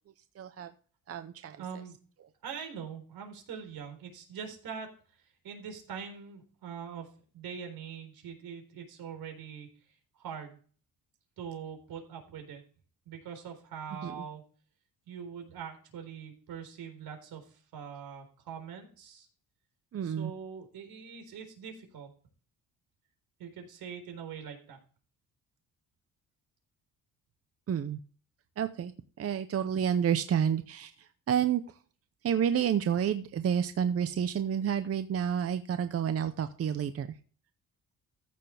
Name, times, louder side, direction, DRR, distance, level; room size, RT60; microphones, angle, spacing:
voice 1, 0.4-0.7 1.1-1.6 14.0-14.2 19.9-20.3 27.7-28.0 28.6-28.9 29.2-31.6 32.2-37.1, right 8 dB, 40° right, 10 dB, 0.7 m, -29 dB
voice 2, 1.6-2.0 2.4-4.9 5.2-7.1 7.3-9.7 10.2-10.6 11.4-12.6 13.1-14.4 15.1-19.3 20.0-22.1 23.4-24.8, right 7 dB, 80° right, 5 dB, 4.1 m, -43 dB
14.5 x 6.9 x 3.4 m, 0.41 s
cardioid pair, 130°, 36 cm